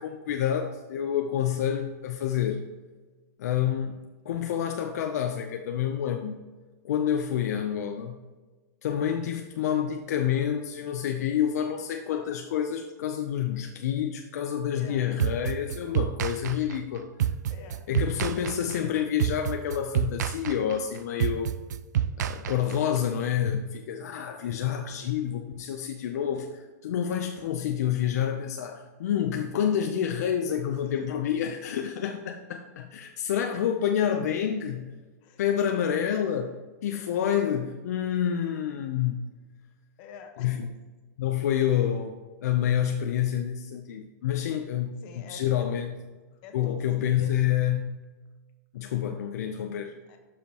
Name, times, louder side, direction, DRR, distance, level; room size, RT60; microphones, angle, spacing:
voice 1, 0.0-2.7 3.4-6.4 6.8-8.2 8.8-17.1 17.9-21.6 22.2-34.9 35.4-39.4 40.4-40.7 41.2-42.2 42.4-45.9 46.5-47.9 48.7-49.9, left 9 dB, 65° left, 4 dB, 0.7 m, -28 dB
voice 2, 14.7-15.1 17.5-18.0 30.8-31.1 35.2-35.4 40.0-40.6 45.0-45.7 46.3-47.4 50.1-50.2, left 4 dB, 40° left, 5 dB, 1.2 m, -46 dB
sound 1, 15.2-23.0, right 9 dB, 80° right, 0.4 m, -29 dB
12.0 x 5.0 x 3.0 m, 1.3 s
hypercardioid pair, 155°, 9 cm